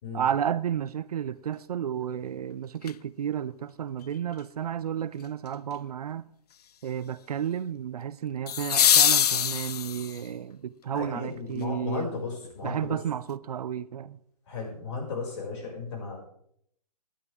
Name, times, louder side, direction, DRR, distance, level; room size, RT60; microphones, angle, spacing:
voice 1, 0.1-6.2 6.8-12.2 12.6-14.2, right 9 dB, 65° right, 0.6 m, -32 dB
sound 1, 2.8-2.9 8.5-10.3 12.4-12.5, left 9 dB, 70° left, 0.5 m, -23 dB
voice 2, 10.9-13.0 14.5-16.2, left 4 dB, 45° left, 6.2 m, -35 dB
18.5 x 10.5 x 3.6 m
hypercardioid pair, 140°, 21 cm